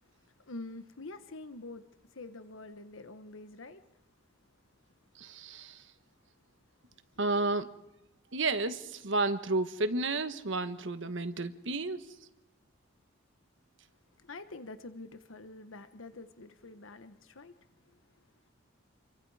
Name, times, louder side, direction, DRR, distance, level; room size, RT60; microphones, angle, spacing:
voice 1, 0.0-3.8 14.2-17.5 17.9-18.0, left 2 dB, 85° left, 1.3 m, -46 dB
voice 2, 5.2-5.8 7.2-7.7 8.3-12.1, right 2 dB, 70° right, 1.4 m, -31 dB
28.5 x 23.5 x 5.0 m
head